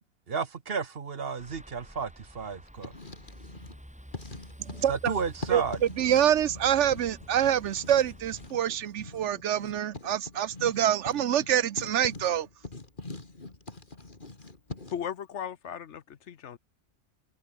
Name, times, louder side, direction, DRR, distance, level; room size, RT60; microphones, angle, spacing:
voice 1, 0.3-2.9 4.9-5.8, right 5 dB, 55° right, 1.4 m, -33 dB
sound 1, 1.4-8.5, equal, 5° right, 6.8 m, -49 dB
Writing, 2.7-3.8 4.1-15.1, left 3 dB, 40° left, 2.8 m, -43 dB
voice 2, 4.6-5.1 5.5-12.5, right 10 dB, 70° right, 1.0 m, -26 dB
voice 3, 14.9-16.6, left 8 dB, 70° left, 1.2 m, -37 dB
omnidirectional pair, 1.3 m